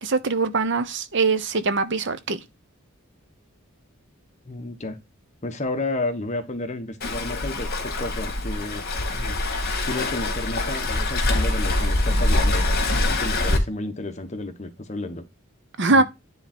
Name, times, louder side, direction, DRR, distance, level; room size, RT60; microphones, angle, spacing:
voice 1, 0.0-2.4 15.8-16.0, right 3 dB, 60° right, 0.9 m, -22 dB
voice 2, 4.4-5.0 5.4-8.9 9.1-9.4 9.9-12.7 12.9-15.2 15.9-16.0, left 2 dB, 35° left, 1.3 m, -31 dB
Waves surf, 7.0-13.6, left 2 dB, 50° left, 2.2 m, -24 dB
10.0 x 3.8 x 4.4 m
head